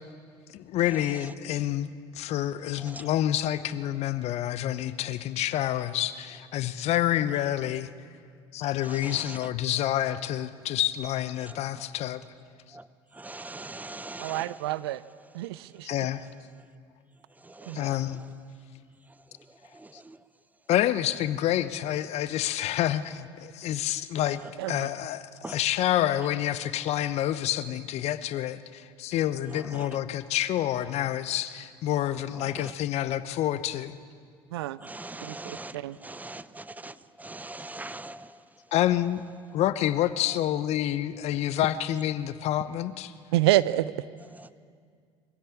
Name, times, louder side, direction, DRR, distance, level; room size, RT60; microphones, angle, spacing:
voice 1, 0.5-7.9 8.5-12.2 15.8-16.3 17.7-18.2 20.7-24.4 24.7-33.9 38.7-39.2 39.5-43.1, left 12 dB, 55° left, 0.9 m, -28 dB
voice 2, 8.9-9.4 11.5-11.6 12.7-12.8 13.1-14.6 17.4-17.9 19.7-20.2 25.4-25.6 29.5-29.9 32.5-32.7 34.8-38.3 44.4-44.5, right 2 dB, 10° right, 0.8 m, -41 dB
voice 3, 14.2-15.0 15.3-15.9 17.7-17.8 24.6-24.9 34.5-34.8 35.2-36.0 43.3-43.9, right 15 dB, 75° right, 0.6 m, -27 dB
22.5 x 16.0 x 8.5 m
hypercardioid pair, 65°, 13 cm